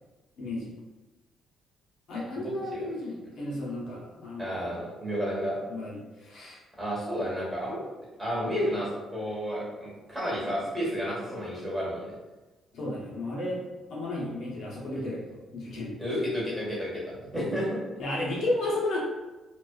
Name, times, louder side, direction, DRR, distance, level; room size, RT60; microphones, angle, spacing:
voice 1, 0.4-0.7 2.1-4.8 5.7-6.6 12.7-13.6 13.9-15.9 17.3-17.4 18.0-19.0, left 1 dB, 75° left, -5 dB, 0.7 m, -33 dB
voice 2, 2.4-2.8 4.4-5.6 6.8-7.9 8.2-12.1 16.0-17.0 17.3-17.8, equal, 10° right, -6 dB, 1.2 m, -31 dB
2.4 x 2.3 x 2.3 m, 1.2 s
cardioid pair, 90°, 0 cm